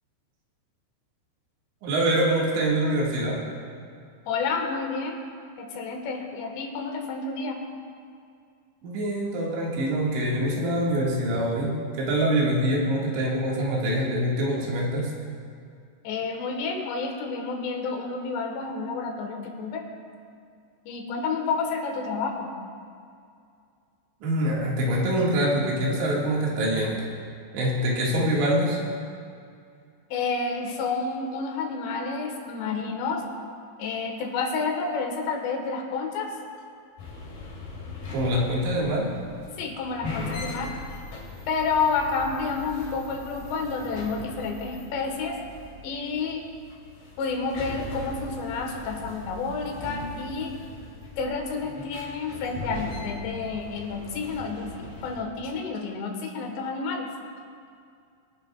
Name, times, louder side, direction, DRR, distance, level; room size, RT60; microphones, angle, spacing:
voice 1, 1.8-3.4 8.8-15.1 24.2-27.1 27.5-28.8 38.1-39.1, right 1 dB, 80° right, -4 dB, 4.0 m, -25 dB
voice 2, 4.3-5.2 5.6-7.6 16.0-19.8 20.9-22.5 30.1-33.2 33.8-36.3 39.6-40.7 41.5-45.4 45.8-46.4 47.2-50.5 51.2-54.7 55.0-57.1, left 4 dB, 75° left, 2 dB, 3.3 m, -30 dB
sound 1, 37.0-55.2, left 3 dB, 60° left, 4.4 m, -39 dB
25.0 x 10.5 x 2.3 m, 2.4 s
omnidirectional pair, 5.2 m